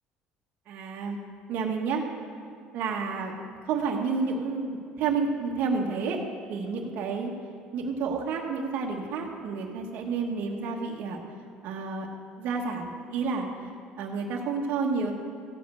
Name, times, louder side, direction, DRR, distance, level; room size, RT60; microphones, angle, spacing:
voice 1, 0.7-1.2 1.5-2.0 2.7-3.3 3.6-6.2 6.5-7.3 7.7-11.2 11.6-12.1 12.4-13.5 14.0-15.1, right 5 dB, 65° right, 1 dB, 1.3 m, -30 dB
15.0 x 5.2 x 8.2 m, 2.2 s
supercardioid pair, 100°, 3 cm